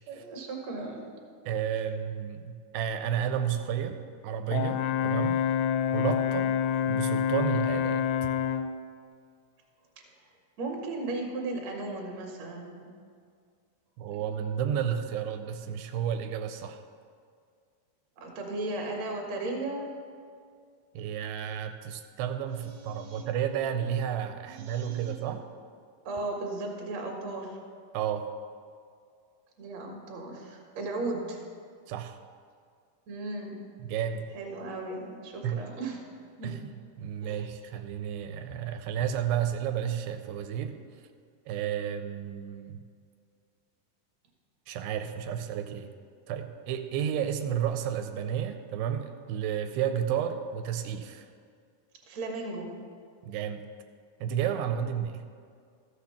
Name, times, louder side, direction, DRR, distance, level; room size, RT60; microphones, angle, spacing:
voice 1, 0.1-1.1 10.6-12.9 14.1-14.2 18.2-19.9 22.6-23.2 24.4-25.4 26.1-27.6 29.6-31.4 33.1-33.6 34.3-36.0 36.4-36.5 37.2-37.4 52.1-52.7, right 2 dB, 55° right, 1 dB, 2.2 m, -36 dB
voice 2, 1.5-5.4 5.9-6.6 6.9-8.0 14.0-16.8 21.0-25.4 27.9-28.3 31.9-32.2 33.8-34.3 35.4-35.6 36.4-36.7 37.0-40.7 41.5-42.8 44.7-45.9 46.3-51.3 53.2-53.7 54.2-55.2, right 9 dB, 90° right, 7 dB, 2.7 m, -32 dB
Brass instrument, 4.5-8.7, left 9 dB, 90° left, 2.6 m, -27 dB
13.5 x 6.5 x 5.8 m, 2.2 s
omnidirectional pair, 4.6 m